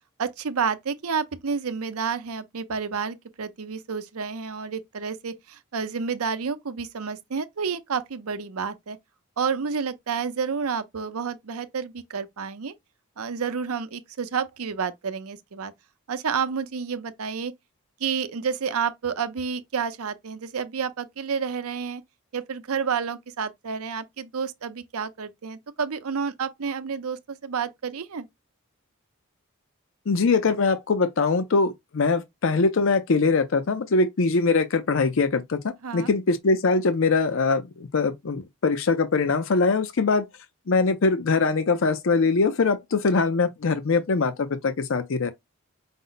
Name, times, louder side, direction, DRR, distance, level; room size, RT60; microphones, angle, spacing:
voice 1, 0.2-9.0 9.4-12.7 13.2-15.7 16.1-17.5 18.0-22.0 22.3-28.3 35.8-36.1, right 6 dB, 80° right, 0.6 m, -30 dB
voice 2, 30.1-40.2 40.7-45.3, left 4 dB, 60° left, 0.5 m, -22 dB
5.2 x 2.0 x 3.9 m
head